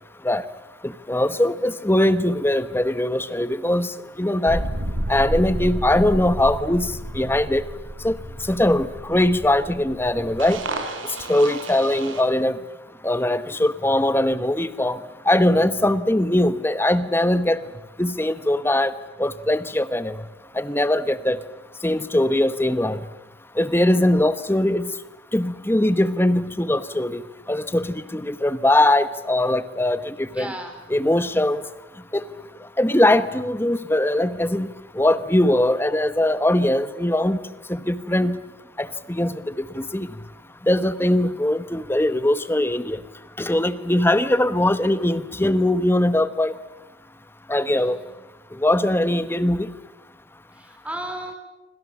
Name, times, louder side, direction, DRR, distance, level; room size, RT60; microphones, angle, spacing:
voice 1, 0.8-4.6 5.1-7.7 8.0-8.2 8.5-10.6 11.3-12.6 13.0-15.0 15.2-17.6 18.0-18.9 19.2-20.2 20.5-21.4 21.8-23.0 23.6-24.9 25.3-27.2 27.5-30.5 30.9-31.6 32.1-32.2 32.8-34.7 34.9-37.4 37.7-38.4 38.8-40.1 40.7-43.0 43.4-46.5 47.5-48.0 48.5-49.7, left 1 dB, 10° left, 13 dB, 1.0 m, -21 dB
sound 1, 4.5-12.2, right 1 dB, 80° right, 4.4 m, -31 dB
voice 2, 30.3-30.8 47.7-48.2 50.5-51.3, right 1 dB, 5° right, 5 dB, 4.2 m, -35 dB
26.5 x 25.5 x 7.2 m, 1.0 s
head